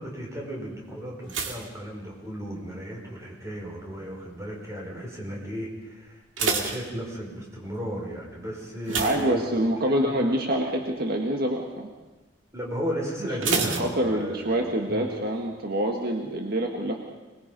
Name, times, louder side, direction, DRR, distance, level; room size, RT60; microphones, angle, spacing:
voice 1, 0.0-9.4 9.8-10.2 12.5-15.1, equal, 15° right, -2 dB, 5.3 m, -35 dB
sound 1, 1.3-2.8 3.0-3.5 4.1-4.5 4.8-4.9 5.3-5.4 6.0-7.6 8.8-10.0 10.3-10.6 11.0-11.1 13.4-14.6 14.9-15.0, right 4 dB, 90° right, 2.2 m, -30 dB
voice 2, 8.9-11.9 13.4-17.0, right 1 dB, 55° right, 2 dB, 1.7 m, -26 dB
25.0 x 20.5 x 5.4 m, 1.2 s
head